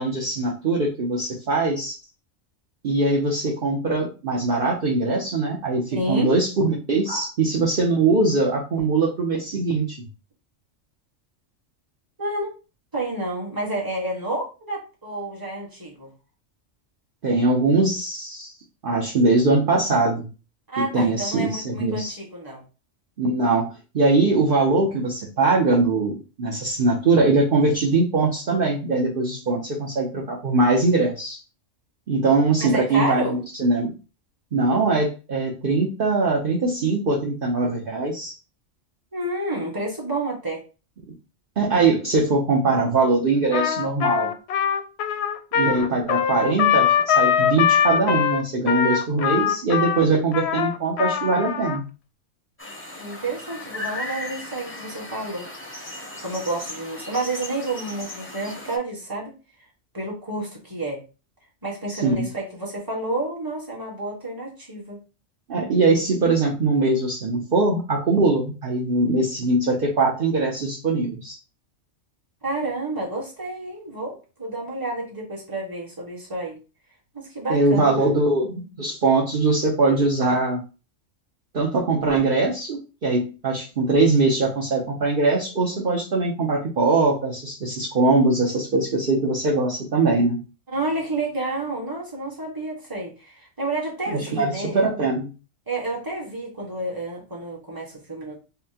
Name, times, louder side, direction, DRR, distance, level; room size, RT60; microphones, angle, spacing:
voice 1, 0.0-1.9 2.8-10.0 17.2-18.5 18.8-20.3 20.8-22.1 23.2-31.4 32.1-33.9 34.5-38.3 41.6-44.3 45.5-51.8 61.9-62.3 65.5-71.4 77.5-80.6 81.5-90.4 94.1-95.3, right 3 dB, 50° right, -3 dB, 0.9 m, -21 dB
voice 2, 5.9-6.3 7.1-7.3 12.2-12.5 12.9-16.1 20.7-22.6 32.6-33.3 39.1-40.6 53.0-55.8 56.2-59.3 59.9-61.0 61.6-65.0 72.4-76.6 77.1-78.1 90.7-94.9 95.7-98.4, right 2 dB, 20° right, -3 dB, 1.3 m, -30 dB
Trumpet, 43.5-51.8, left 9 dB, 65° left, 0.8 m, -22 dB
sound 1, 52.6-58.8, left 2 dB, 15° left, 0.6 m, -36 dB
5.5 x 2.2 x 2.8 m, 0.33 s
omnidirectional pair, 1.3 m